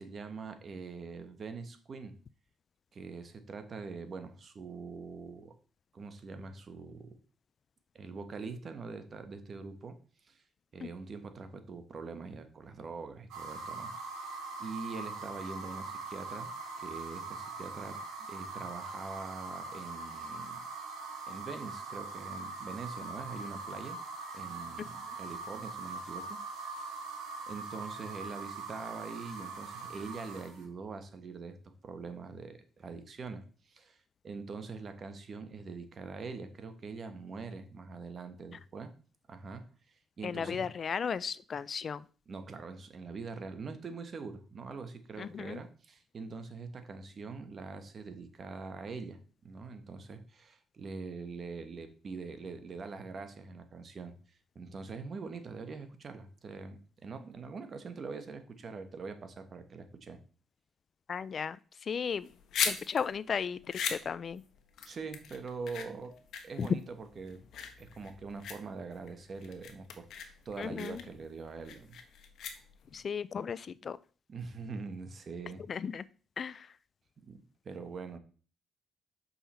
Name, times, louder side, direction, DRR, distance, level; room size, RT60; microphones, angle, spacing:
voice 1, 0.0-2.1 2.9-5.5 5.9-7.2 7.9-10.4 10.7-16.5 16.8-18.0 18.3-20.6 21.3-24.0 24.3-26.4 26.7-27.0 27.5-34.0 34.2-38.9 39.3-40.7 42.3-54.1 54.5-60.2 64.9-66.1 66.4-67.4 67.8-72.0 74.3-75.6 77.2-78.2, right 4 dB, 45° right, 8 dB, 1.3 m, -43 dB
sound 1, 13.3-30.6, right 3 dB, 85° right, 2.5 m, -42 dB
voice 2, 40.2-42.0 45.2-45.6 61.1-62.3 62.6-64.4 66.6-66.7 70.6-71.0 72.9-74.0 75.7-76.0 76.4-76.7, left 6 dB, 45° left, 18 dB, 0.4 m, -35 dB
sound 2, 62.1-73.0, left 7 dB, 70° left, 1.2 m, -39 dB
7.1 x 5.5 x 4.3 m, 0.39 s
cardioid pair, 90°, 0 cm